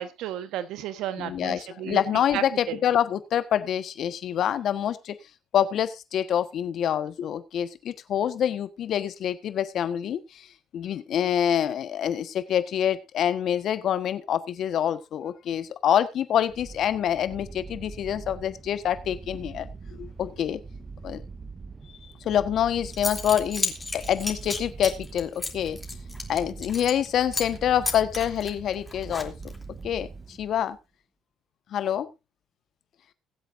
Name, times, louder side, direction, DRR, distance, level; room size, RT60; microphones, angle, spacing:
voice 1, 0.0-2.0 2.3-2.8, right 11 dB, 75° right, 1.4 m, -33 dB
voice 2, 1.2-5.2 5.5-10.5 10.7-19.7 20.0-20.6 21.0-21.2 22.2-25.8 26.3-29.3 29.8-30.8 31.7-32.1, left 10 dB, 65° left, 1.4 m, -26 dB
sound 1, 16.5-30.8, right 4 dB, 35° right, 1.1 m, -42 dB
Zipper (clothing) / Coin (dropping), 22.6-22.7 22.9-27.1 27.3-27.6 27.8-29.6, left 3 dB, 20° left, 3.3 m, -32 dB
22.0 x 8.2 x 2.7 m
supercardioid pair, 65°, 0 cm